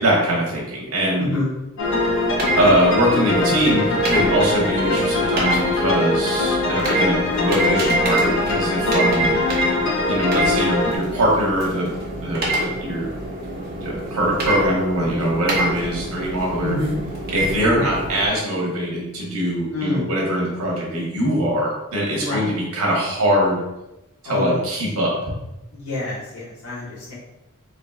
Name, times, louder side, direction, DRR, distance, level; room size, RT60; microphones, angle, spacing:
voice 1, 0.0-1.3 2.5-9.4 10.1-11.9 12.2-13.1 13.8-16.7 17.3-23.6 24.2-25.4, equal, 80° right, -3 dB, 1.3 m, -22 dB
sound 1, 1.8-11.0, left 2 dB, 60° left, 0.7 m, -22 dB
sound 2, 1.8-18.3, right 1 dB, 45° right, 0.9 m, -27 dB
voice 2, 16.6-17.0 17.7-17.9 19.7-20.0 22.1-22.4 24.2-24.5 25.7-27.2, left 2 dB, 80° left, -8 dB, 1.3 m, -27 dB
4.0 x 3.8 x 2.4 m, 0.94 s
head